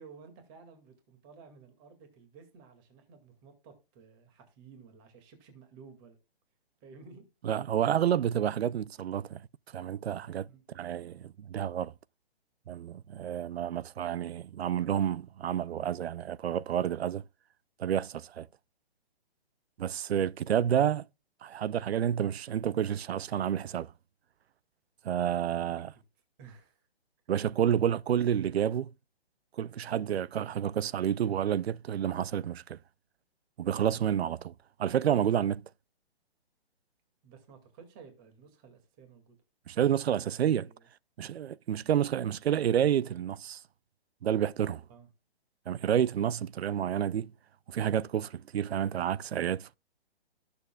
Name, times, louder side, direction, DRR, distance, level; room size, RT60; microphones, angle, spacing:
voice 1, 0.0-6.2 6.8-7.3 10.5-10.6 25.1-25.8 26.4-26.9 37.2-39.4 40.6-40.9 44.9-45.1, right 5 dB, 20° right, 2.2 m, -54 dB
voice 2, 7.4-9.4 9.7-10.5 10.7-11.9 12.7-17.2 17.8-18.5 19.8-21.0 21.4-23.9 25.0-25.9 27.3-28.9 29.6-32.8 33.6-34.5 34.8-35.6 39.7-40.7 41.2-43.6 44.2-44.8 45.7-47.3 47.7-49.8, right 9 dB, 80° right, 0.5 m, -29 dB
18.0 x 7.0 x 2.3 m
hypercardioid pair, 165°, 31 cm